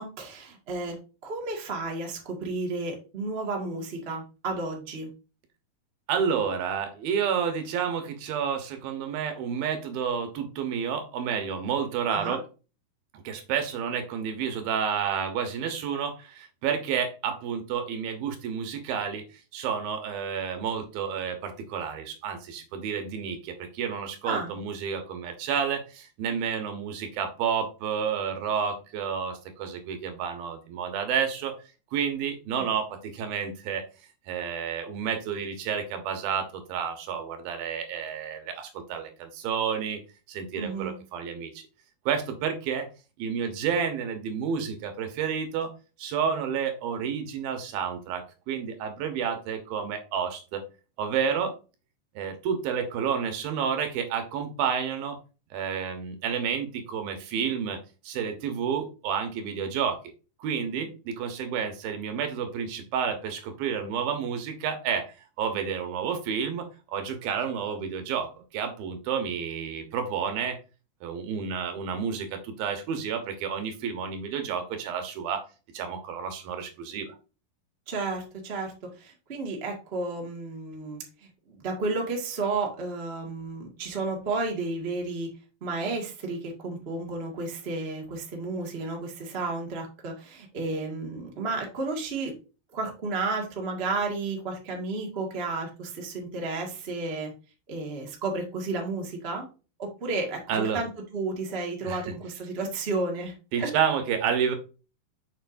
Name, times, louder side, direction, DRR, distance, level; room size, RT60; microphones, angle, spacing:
voice 1, 0.0-5.1 12.1-12.4 24.2-24.5 32.5-32.6 40.5-41.0 77.9-85.3 85.6-92.3 92.7-97.3 97.7-99.5 99.8-103.3 103.6-103.7, right 3 dB, 40° right, 0 dB, 0.8 m, -32 dB
voice 2, 6.1-12.4 13.1-19.2 19.5-31.5 31.9-33.9 34.3-40.0 40.3-41.6 42.1-42.9 43.2-45.7 46.0-50.6 51.0-51.5 52.2-55.2 55.5-57.8 58.0-60.0 60.4-70.6 71.0-75.5 75.7-77.2 100.5-100.8 101.8-102.0 103.5-104.6, right 7 dB, 75° right, 6 dB, 2.9 m, -30 dB
7.0 x 6.9 x 2.6 m, 0.33 s
omnidirectional pair, 4.4 m